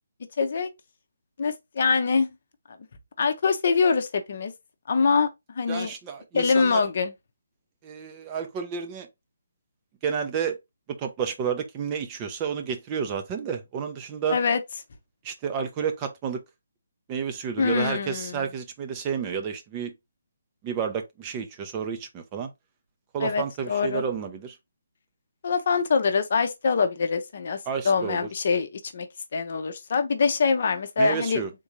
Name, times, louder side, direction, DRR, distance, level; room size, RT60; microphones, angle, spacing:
voice 1, 0.4-0.7 1.4-2.3 3.2-4.5 4.9-5.3 5.6-5.9 6.3-7.1 14.3-14.6 17.6-18.4 23.2-24.0 25.4-27.6 27.8-29.1 29.3-31.4, left 5 dB, 50° left, 0.7 m, -24 dB
voice 2, 5.7-6.8 7.8-9.1 10.0-10.6 11.0-14.4 15.2-16.4 17.1-19.9 20.6-22.5 23.1-24.6 27.7-28.3 31.0-31.5, right 7 dB, 20° right, 0.6 m, -30 dB
3.7 x 2.6 x 3.0 m
figure-of-eight pair, 150°, 0 cm